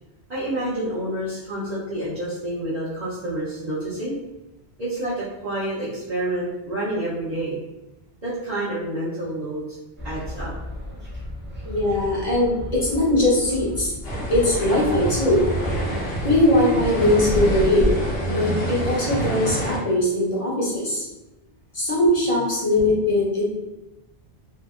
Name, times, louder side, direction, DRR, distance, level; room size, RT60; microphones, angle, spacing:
voice 1, 0.3-4.2 4.8-7.6 8.2-9.7 10.0-10.5, right 1 dB, 45° right, -11 dB, 0.7 m, -28 dB
sound 1, 10.0-18.3, left 1 dB, 15° right, 0.4 m, -35 dB
voice 2, 11.6-13.9 14.3-15.5 16.2-17.9 18.3-21.0 21.7-23.4, left 1 dB, 40° left, -6 dB, 0.8 m, -20 dB
sound 2, 14.0-19.8, right 1 dB, 70° left, 1.0 m, -26 dB
2.8 x 2.4 x 2.4 m, 0.98 s
omnidirectional pair, 1.1 m